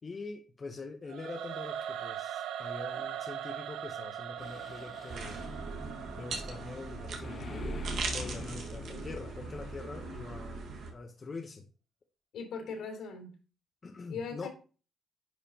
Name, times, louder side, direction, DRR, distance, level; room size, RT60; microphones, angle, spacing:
voice 1, 0.0-5.4 6.2-10.6 10.9-11.7 13.8-14.5, left 3 dB, 35° left, 3 dB, 0.9 m, -44 dB
Singing / Musical instrument, 1.1-8.2, right 9 dB, 90° right, 0.5 m, -41 dB
Mechanisms, 4.4-10.3, left 6 dB, 50° left, 0.5 m, -48 dB
sound 1, 5.1-10.9, right 3 dB, 65° right, 1.6 m, -39 dB
voice 2, 12.3-13.3 14.1-14.5, left 5 dB, 80° left, 3 dB, 3.5 m, -39 dB
10.5 x 4.9 x 2.9 m, 0.35 s
cardioid pair, 110°, 0 cm